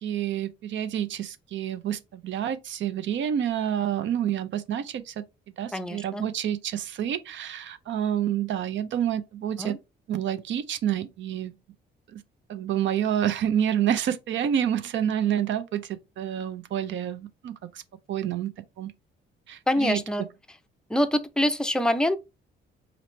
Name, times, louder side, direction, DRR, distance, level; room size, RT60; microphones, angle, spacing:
voice 1, 0.0-5.1 5.6-9.7 10.1-11.5 12.1-12.2 12.5-17.8 18.1-18.5 18.8-18.9 19.5-20.0, right 10 dB, 70° right, 0.6 m, -28 dB
voice 2, 5.7-6.2 9.6-9.8 19.7-20.3 20.9-22.2, left 1 dB, 5° left, 0.5 m, -25 dB
4.0 x 2.9 x 3.1 m
cardioid pair, 90°, 20 cm